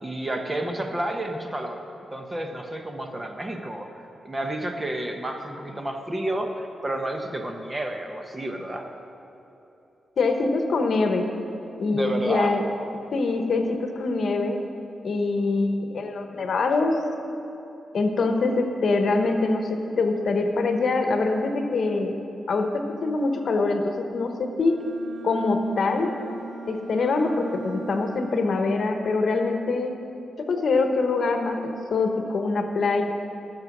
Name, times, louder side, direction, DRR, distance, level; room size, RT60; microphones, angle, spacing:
voice 1, 0.0-1.8 2.1-3.9 4.2-8.9 11.9-12.6, right 1 dB, 20° right, 4 dB, 0.9 m, -30 dB
voice 2, 10.2-11.3 11.8-12.6 13.1-14.6 15.0-17.0 17.9-22.1 22.5-24.8 25.2-26.1 26.7-30.0 30.4-33.0, left 3 dB, 60° left, 4 dB, 1.0 m, -24 dB
Bowed string instrument, 24.6-28.7, right 4 dB, 75° right, 1.1 m, -40 dB
15.0 x 6.8 x 6.1 m, 3.0 s
wide cardioid pair, 125°, 0 cm